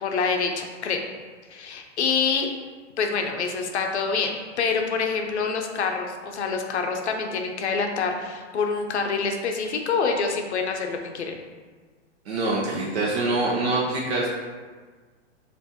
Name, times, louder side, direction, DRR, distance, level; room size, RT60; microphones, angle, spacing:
voice 1, 0.0-1.0 1.5-2.5 3.0-11.4, left 5 dB, 65° left, 3 dB, 0.6 m, -26 dB
voice 2, 12.3-14.3, right 2 dB, 55° right, -4 dB, 0.7 m, -25 dB
5.6 x 2.6 x 2.8 m, 1.4 s
hypercardioid pair, 180°, 37 cm